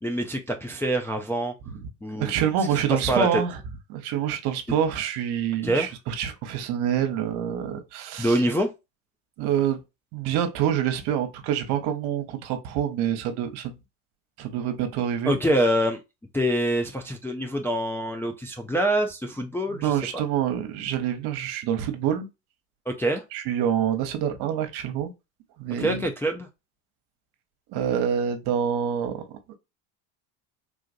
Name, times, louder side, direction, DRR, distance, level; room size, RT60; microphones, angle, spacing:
voice 1, 0.0-1.5 2.0-2.3 2.9-3.3 5.6-5.9 8.2-8.7 15.3-16.0 16.3-19.9 22.9-23.2 25.8-26.5, right 1 dB, 5° left, 0.4 m, -25 dB
voice 2, 2.2-3.6 3.9-8.4 9.4-9.8 10.1-13.7 14.4-15.4 19.7-22.3 23.3-25.1 25.6-26.0 27.7-29.2, right 9 dB, 60° right, 1.0 m, -26 dB
3.8 x 2.4 x 2.5 m
supercardioid pair, 90°, 43 cm